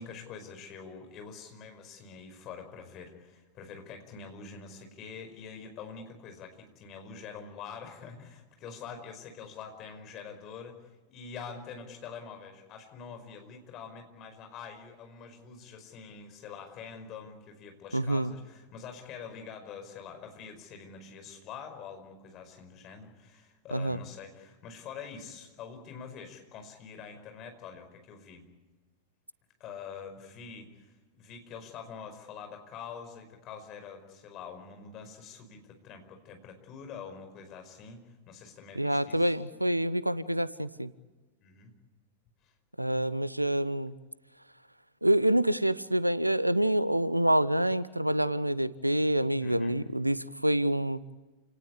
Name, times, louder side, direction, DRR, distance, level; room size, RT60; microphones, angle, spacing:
voice 1, 0.0-28.4 29.6-30.9 31.1-39.3 41.4-41.7 42.4-42.5 49.4-49.8, left 6 dB, 35° left, 5 dB, 5.2 m, -45 dB
voice 2, 17.9-18.3 23.7-24.0 38.8-40.9 42.8-43.9 45.0-51.0, right 1 dB, 90° right, 18 dB, 0.7 m, -27 dB
28.5 x 18.5 x 8.5 m, 1.2 s
figure-of-eight pair, 90°, 0 cm